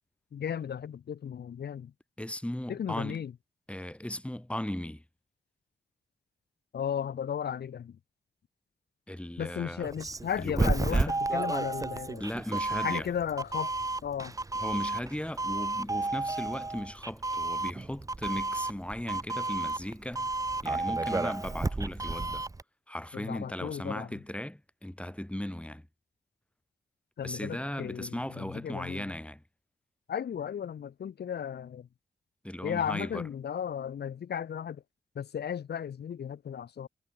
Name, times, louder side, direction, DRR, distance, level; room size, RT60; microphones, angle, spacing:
voice 1, 0.3-1.9 2.7-3.3 6.7-8.0 9.4-12.2 12.8-13.7 14.0-14.3 23.1-24.2 27.2-29.0 30.1-31.9 32.6-34.8 35.1-36.9, left 8 dB, 80° left, 1.1 m, -35 dB
voice 2, 2.2-3.2 3.7-5.0 9.1-9.8 10.4-11.2 12.2-13.1 14.6-20.3 20.6-22.4 22.9-25.9 27.2-29.4 32.4-33.3, left 1 dB, 5° left, 3.7 m, -37 dB
Doorbell, 9.8-22.6, right 3 dB, 20° right, 0.7 m, -32 dB
wide cardioid pair, 85°, 17 cm